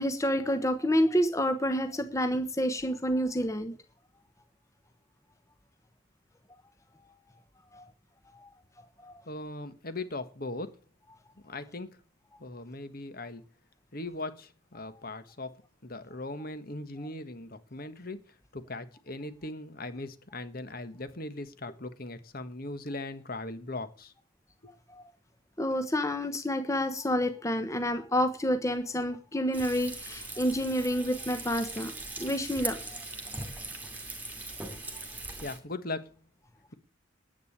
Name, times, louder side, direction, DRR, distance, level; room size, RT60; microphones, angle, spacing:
voice 1, 0.0-3.7 7.7-7.9 8.3-8.5 9.0-9.1 24.9-25.0 25.6-31.9 32.2-33.0, equal, 15° left, 1.1 m, -29 dB
voice 2, 9.2-10.8 11.4-12.0 12.4-13.4 13.9-24.1 24.6-24.7 35.4-36.2, left 2 dB, 45° left, 1.5 m, -39 dB
Frying (food), 29.5-35.6, right 2 dB, 10° right, 2.5 m, -40 dB
10.5 x 8.7 x 8.6 m
head